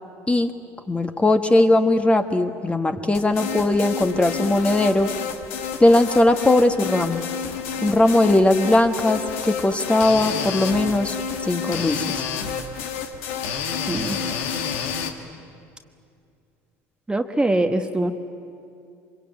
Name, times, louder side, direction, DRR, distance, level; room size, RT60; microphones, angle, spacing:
voice 1, 0.9-5.1 5.8-7.2 7.8-11.1 11.4-12.2, left 2 dB, 15° left, 7 dB, 1.6 m, -19 dB
sound 1, 3.1-15.1, left 6 dB, 85° left, 1.8 m, -29 dB
voice 2, 13.9-14.2 17.1-18.1, right 2 dB, 15° right, 6 dB, 1.3 m, -22 dB
25.0 x 22.5 x 9.1 m, 2.5 s
supercardioid pair, 80°, 7 cm